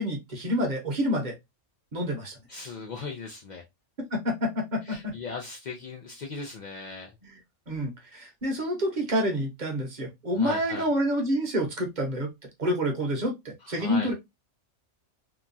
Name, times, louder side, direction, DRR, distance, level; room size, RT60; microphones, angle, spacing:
voice 1, 0.0-1.3 1.9-2.4 4.1-5.1 7.7-12.3 12.6-14.1, equal, 40° right, 0.9 m, -28 dB
voice 2, 2.5-3.6 4.9-7.1 10.3-10.9 13.6-14.1, left 4 dB, 75° left, 0.4 m, -38 dB
2.9 x 2.2 x 2.5 m
omnidirectional pair, 1.4 m